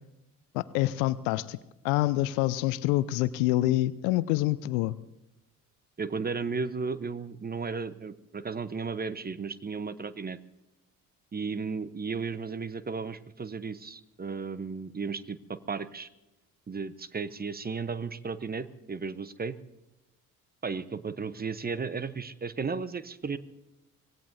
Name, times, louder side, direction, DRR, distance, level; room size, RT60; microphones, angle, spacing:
voice 1, 0.5-1.6 1.8-4.9, left 16 dB, 65° left, 19 dB, 0.7 m, -26 dB
voice 2, 6.0-10.4 11.3-16.1 16.7-19.5 20.6-23.4, right 5 dB, 20° right, 15 dB, 1.0 m, -34 dB
25.0 x 18.0 x 2.8 m, 0.95 s
figure-of-eight pair, 50°, 44 cm